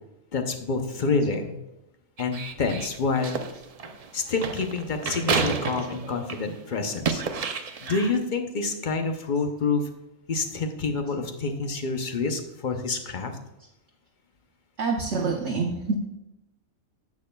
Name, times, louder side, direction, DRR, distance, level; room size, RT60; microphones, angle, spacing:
voice 1, 0.3-1.5 2.2-3.4 4.1-7.2 7.8-9.8 10.3-13.4, left 4 dB, 45° left, 5 dB, 0.7 m, -27 dB
sound 1, 2.2-6.5 6.9-8.2, right 5 dB, 75° right, 0.3 m, -30 dB
voice 2, 14.8-15.9, right 4 dB, 55° right, 0 dB, 1.0 m, -27 dB
10.5 x 7.4 x 2.3 m, 0.92 s
omnidirectional pair, 1.4 m